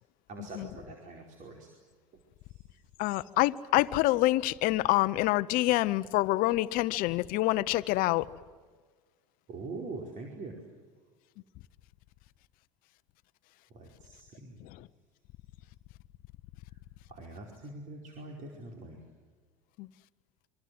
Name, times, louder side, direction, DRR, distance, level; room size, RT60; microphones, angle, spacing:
voice 1, 0.3-1.7 2.1-2.2 2.6-2.7 9.5-10.6 13.7-14.6 17.1-19.0, right 3 dB, 45° right, 4.9 m, -43 dB
voice 2, 3.0-8.3 14.6-14.9 19.8-19.9, left 17 dB, 55° left, 0.9 m, -27 dB
26.5 x 25.0 x 7.9 m
hypercardioid pair, 80°, 18 cm